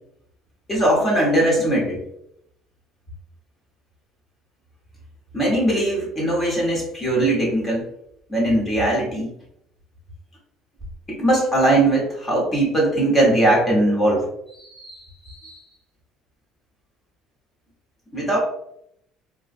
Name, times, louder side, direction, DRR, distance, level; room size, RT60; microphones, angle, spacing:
voice 1, 0.7-2.0 5.3-7.9 8.3-9.3 11.1-15.6 18.1-18.4, right 1 dB, 15° left, -3 dB, 1.1 m, -20 dB
3.6 x 2.3 x 2.5 m, 0.75 s
cardioid pair, 160°, 0 cm